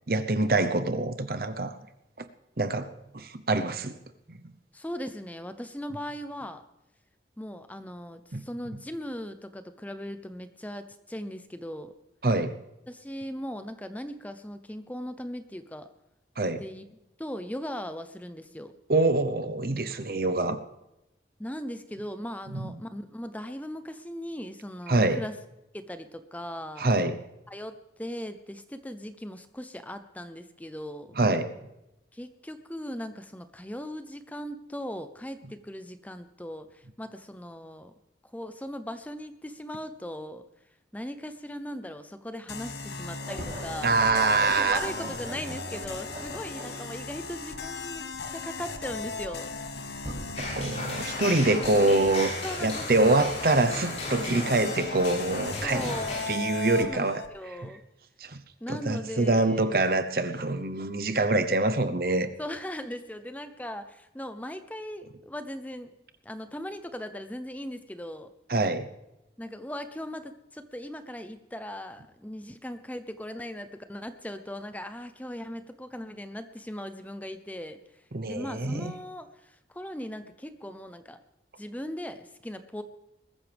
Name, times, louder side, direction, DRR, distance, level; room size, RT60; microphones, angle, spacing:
voice 1, 0.1-1.8 2.2-2.3 2.6-2.9 3.1-4.0 4.3-4.4 8.3-8.4 12.2-12.5 16.4-16.6 18.9-20.6 22.5-22.7 24.9-25.2 26.8-27.2 31.2-31.5 43.8-45.1 50.4-52.4 52.6-55.9 56.3-57.2 58.2-58.4 58.7-62.3 68.5-68.9 78.1-78.9, right 2 dB, 55° right, 10 dB, 0.9 m, -25 dB
voice 2, 4.7-6.6 7.4-11.9 12.9-15.9 16.6-16.9 17.2-18.7 21.4-25.3 25.7-26.9 27.5-31.1 32.1-37.9 38.3-40.4 40.9-44.0 44.4-49.5 52.4-53.4 55.6-56.2 56.7-57.8 58.6-59.7 62.4-65.9 66.2-68.3 69.4-81.2 81.6-82.8, equal, 10° left, 9 dB, 0.7 m, -39 dB
sound 1, 42.5-57.3, left 4 dB, 75° left, 1.2 m, -37 dB
sound 2, 43.2-51.6, equal, 25° right, 6.8 m, -42 dB
sound 3, 50.3-56.2, left 2 dB, 35° left, 7.2 m, -36 dB
21.0 x 14.0 x 3.5 m, 0.91 s
head